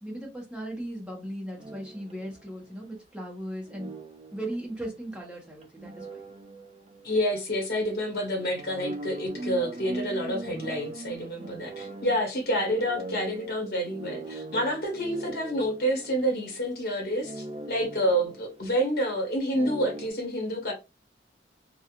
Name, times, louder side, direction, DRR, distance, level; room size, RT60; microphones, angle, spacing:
voice 1, 0.0-3.9 4.3-6.1, right 1 dB, 5° right, 0.8 m, -37 dB
sound 1, 1.6-2.6 3.7-4.9 5.6-7.4 7.7-7.9 8.3-16.8 17.1-18.8 19.5-20.1, right 2 dB, 30° right, 0.3 m, -40 dB
voice 2, 7.0-20.7, equal, 50° left, 1.2 m, -28 dB
2.4 x 2.3 x 2.9 m
head